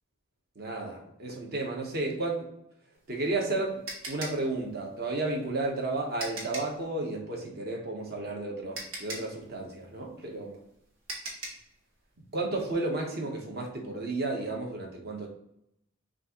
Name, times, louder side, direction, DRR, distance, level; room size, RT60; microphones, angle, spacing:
voice 1, 0.5-2.5 3.1-10.6 12.3-15.3, right 2 dB, 50° right, 0 dB, 1.0 m, -32 dB
sound 1, 3.0-6.8 8.2-8.3 8.7-11.7, right 2 dB, 75° right, 1.4 m, -40 dB
6.1 x 2.6 x 3.0 m, 0.77 s
head